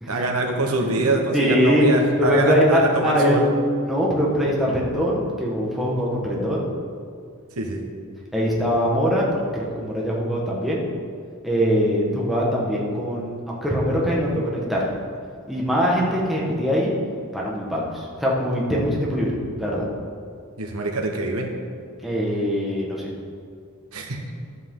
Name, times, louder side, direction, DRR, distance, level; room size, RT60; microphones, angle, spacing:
voice 1, 0.1-3.4 7.6-7.8 20.6-21.5 23.9-24.2, right 2 dB, 75° right, 1 dB, 1.3 m, -24 dB
voice 2, 0.8-1.9 2.2-3.4 3.8-6.7 8.3-9.3 9.5-10.8 11.4-14.9 15.5-16.9 17.3-19.8 22.0-23.1, equal, ahead, -4 dB, 1.5 m, -22 dB
11.5 x 7.7 x 3.9 m, 2.1 s
head